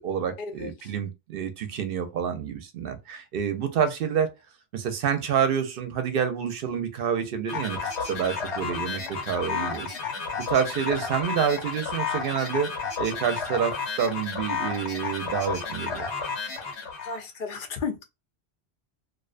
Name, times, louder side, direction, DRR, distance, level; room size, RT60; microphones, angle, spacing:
voice 1, 0.0-4.3 4.7-9.9 10.5-16.1, right 7 dB, 65° right, 0.7 m, -28 dB
voice 2, 0.6-0.9 17.0-18.0, left 5 dB, 60° left, 0.7 m, -34 dB
sound 1, 7.5-17.2, left 5 dB, 85° left, 1.2 m, -32 dB
2.4 x 2.2 x 2.4 m
omnidirectional pair, 1.1 m